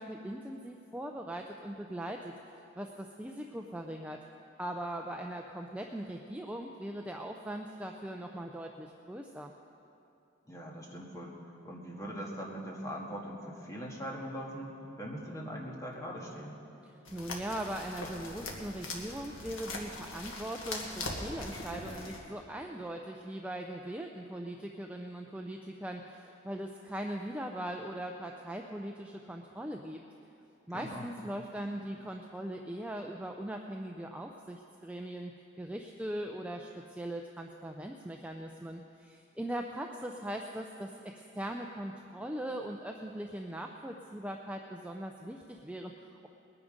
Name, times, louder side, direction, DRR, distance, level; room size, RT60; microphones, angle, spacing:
voice 1, 0.0-4.2 4.6-9.5 16.8-30.0 30.7-35.3 35.6-46.3, right 1 dB, 5° right, 2 dB, 0.4 m, -40 dB
voice 2, 10.5-11.3 11.6-14.7 15.0-16.6 30.7-31.1, equal, 15° left, -3 dB, 1.9 m, -41 dB
sound 1, 17.1-22.2, left 2 dB, 80° left, 1.8 m, -41 dB
20.5 x 9.8 x 5.2 m, 2.7 s
head